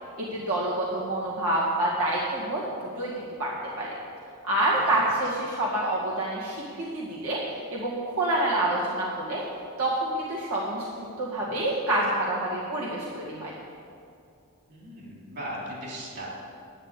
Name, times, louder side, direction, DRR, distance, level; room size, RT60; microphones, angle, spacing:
voice 1, 0.3-2.6 3.0-3.1 3.4-3.5 3.8-3.9 4.5-7.4 7.7-9.4 9.8-13.5, right 1 dB, 80° right, -6 dB, 1.9 m, -27 dB
voice 2, 4.7-5.1 14.7-16.3, equal, 50° right, -4 dB, 3.4 m, -38 dB
11.5 x 6.8 x 8.3 m, 2.4 s
head